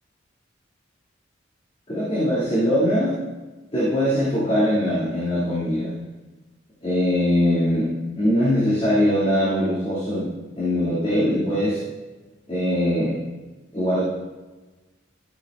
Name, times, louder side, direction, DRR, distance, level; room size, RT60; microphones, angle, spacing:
voice 1, 1.9-3.2 3.7-5.9 6.8-10.3 10.6-11.8 12.5-13.2 13.7-14.0, equal, 30° left, -10 dB, 2.5 m, -21 dB
14.0 x 8.5 x 2.5 m, 1.2 s
head